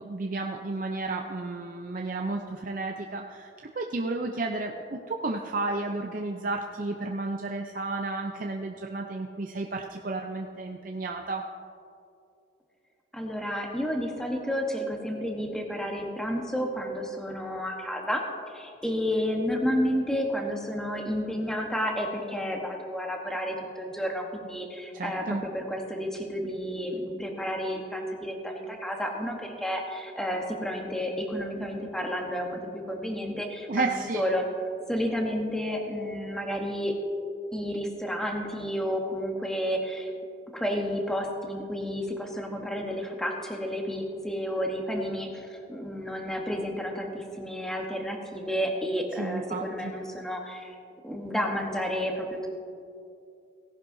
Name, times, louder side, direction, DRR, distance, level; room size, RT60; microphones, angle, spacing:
voice 1, 0.0-3.5 3.8-11.4 24.9-25.4 33.7-34.2 49.2-49.9, right 2 dB, 45° right, 2 dB, 0.5 m, -32 dB
voice 2, 13.1-18.2 18.5-34.5 34.9-37.0 37.5-40.1 40.5-50.7 51.0-52.5, equal, 5° left, 1 dB, 1.1 m, -31 dB
17.5 x 11.0 x 2.7 m, 2.6 s
head